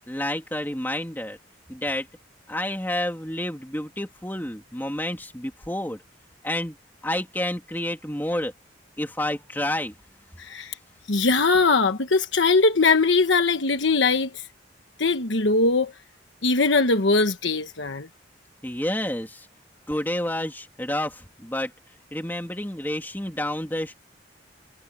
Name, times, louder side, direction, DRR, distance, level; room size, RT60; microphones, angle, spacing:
voice 1, 0.0-1.4 1.7-2.1 2.5-6.0 6.4-6.7 7.0-8.5 9.0-9.9 18.6-19.5 19.9-21.7 22.1-23.9, left 1 dB, 10° left, 3.0 m, -29 dB
voice 2, 10.4-10.7 11.1-14.3 15.0-15.9 16.4-18.1, left 3 dB, 85° left, 1.2 m, -21 dB
head